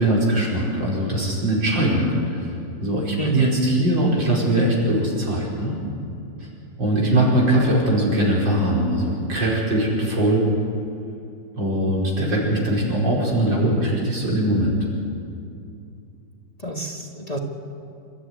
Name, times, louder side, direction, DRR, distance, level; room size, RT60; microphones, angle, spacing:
voice 1, 0.0-2.5 2.8-5.8 6.8-10.5 11.6-14.8, right 1 dB, 85° right, -3 dB, 5.6 m, -21 dB
voice 2, 3.2-3.5 16.6-17.4, right 2 dB, 20° left, 2 dB, 1.5 m, -27 dB
28.0 x 13.5 x 9.6 m, 2.6 s
omnidirectional pair, 2.0 m